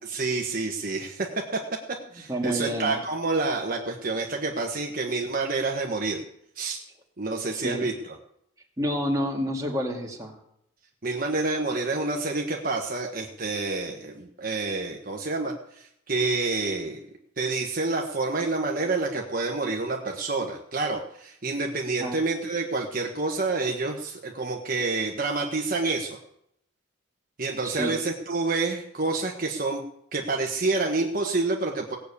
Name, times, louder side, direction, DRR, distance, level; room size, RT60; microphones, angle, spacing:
voice 1, 0.0-1.6 2.1-6.2 6.5-6.8 7.2-8.2 11.0-17.0 17.4-26.2 27.4-29.8 30.1-32.0, right 3 dB, 40° right, 1 dB, 1.3 m, -28 dB
voice 2, 2.3-3.0 7.5-7.9 8.8-10.3 22.0-22.2 27.6-27.9, equal, 15° right, -1 dB, 2.3 m, -29 dB
18.0 x 6.9 x 8.4 m, 0.74 s
head